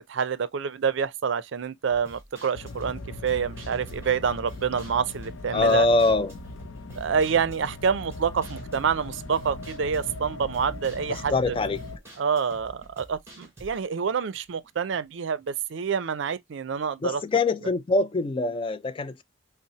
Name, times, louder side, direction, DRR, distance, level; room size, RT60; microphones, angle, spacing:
voice 1, 0.1-5.9 6.9-11.6 12.2-17.2, right 6 dB, 70° right, 0.4 m, -27 dB
sound 1, 1.9-15.1 15.4-15.5 15.9-16.0, right 1 dB, 15° right, 1.3 m, -48 dB
sound 2, 2.5-12.0, left 2 dB, 85° left, 0.5 m, -40 dB
voice 2, 5.5-6.3 11.1-11.8 17.0-19.2, left 3 dB, 25° left, 0.3 m, -23 dB
5.4 x 2.0 x 2.8 m
head